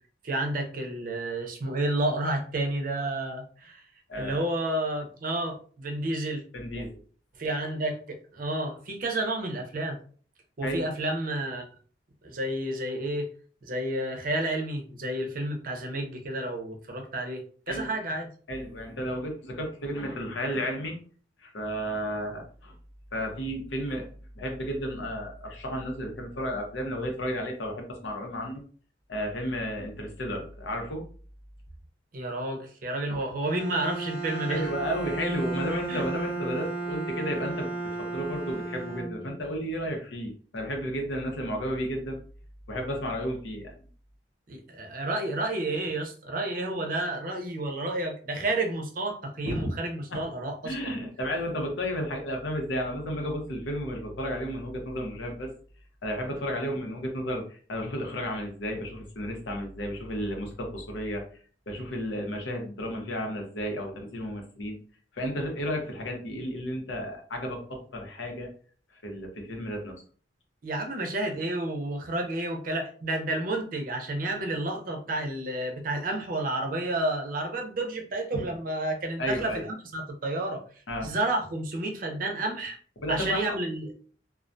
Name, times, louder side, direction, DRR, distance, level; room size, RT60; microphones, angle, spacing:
voice 1, 0.2-3.8 4.2-6.4 6.7-6.9 7.3-10.0 10.6-11.6 12.2-13.3 13.6-18.3 32.1-34.7 35.9-36.0 44.5-50.9 70.6-80.6 81.0-82.8 83.1-84.1, right 1 dB, 50° right, 3 dB, 0.5 m, -30 dB
voice 2, 4.1-4.4 6.5-6.9 10.6-10.8 17.7-17.9 18.5-21.0 21.4-22.7 23.1-24.1 24.4-28.6 29.1-31.1 33.1-33.2 34.5-42.2 42.7-43.7 49.4-49.7 50.1-50.2 50.6-55.5 56.0-61.2 61.7-64.8 65.1-68.5 68.9-70.0 78.3-78.5 79.2-79.6 80.9-81.1 83.0-83.4, equal, 90° left, 2 dB, 0.7 m, -33 dB
Bowed string instrument, 33.4-39.6, right 3 dB, 10° right, 0.7 m, -34 dB
2.3 x 2.1 x 2.5 m, 0.44 s
head